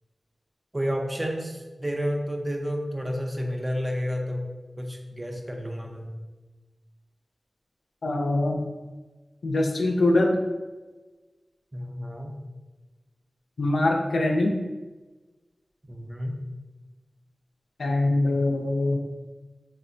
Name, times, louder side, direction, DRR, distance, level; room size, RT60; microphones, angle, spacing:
voice 1, 0.7-4.5 4.8-6.1 11.7-12.4 15.9-16.4, equal, 20° right, 2 dB, 0.5 m, -30 dB
voice 2, 8.0-8.7 9.4-10.4 13.6-14.5 17.8-19.0, left 2 dB, 85° left, 1 dB, 0.4 m, -23 dB
4.2 x 2.1 x 2.5 m, 1.2 s
wide cardioid pair, 65°, 0 cm